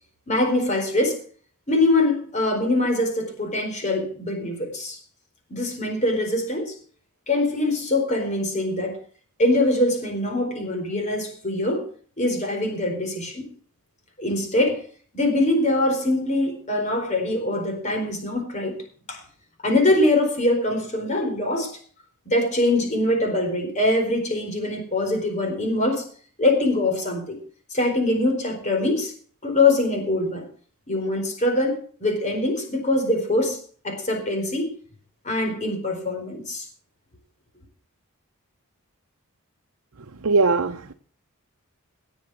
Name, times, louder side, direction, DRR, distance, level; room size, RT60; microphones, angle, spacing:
voice 1, 0.3-1.2 1.7-5.0 5.5-6.8 7.3-9.0 9.4-11.9 12.2-13.4 14.2-14.9 15.1-18.8 19.1-19.2 19.6-21.8 22.3-26.1 26.4-27.4 27.7-29.1 29.4-30.4 30.9-34.7 35.2-36.7, left 2 dB, 30° left, 4.3 m, -23 dB
voice 2, 40.2-40.9, right 3 dB, 75° right, 0.8 m, -20 dB
18.0 x 7.1 x 6.4 m
head